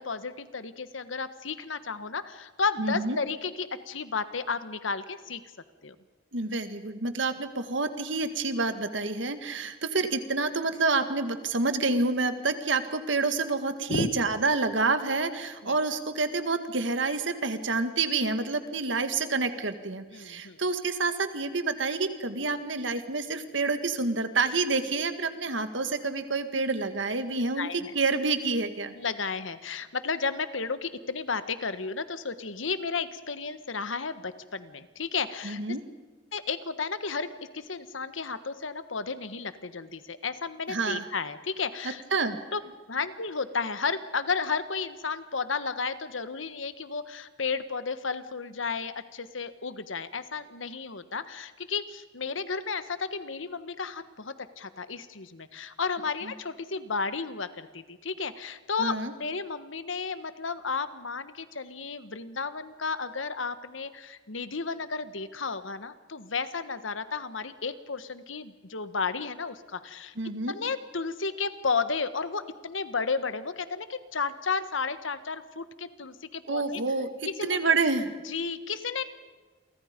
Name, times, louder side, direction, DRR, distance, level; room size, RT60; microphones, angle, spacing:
voice 1, 0.0-5.4 5.8-5.9 13.9-14.1 15.6-15.8 20.1-20.6 27.6-27.9 28.9-35.6 36.3-42.0 42.5-42.6 42.9-70.1 70.5-76.8 77.4-77.7 78.2-79.0, left 4 dB, 80° left, 12 dB, 1.4 m, -33 dB
voice 2, 2.8-3.2 6.3-28.9 35.4-35.8 40.7-41.1 42.1-42.4 56.2-56.3 58.8-59.1 70.2-70.6 76.5-77.1 77.4-78.1, right 3 dB, 70° right, 9 dB, 1.9 m, -28 dB
29.5 x 24.0 x 5.3 m, 1.4 s
head